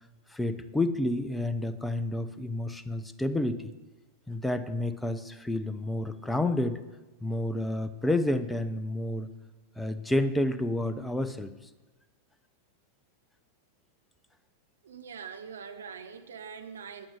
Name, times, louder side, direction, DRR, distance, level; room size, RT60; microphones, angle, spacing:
voice 1, 0.3-3.7 4.3-6.8 7.2-9.3 9.8-11.5, left 1 dB, 5° left, 11 dB, 0.7 m, -30 dB
voice 2, 14.8-17.1, right 6 dB, 65° right, 7 dB, 0.9 m, -43 dB
11.5 x 8.8 x 6.5 m, 1.2 s
figure-of-eight pair, 90°, 0 cm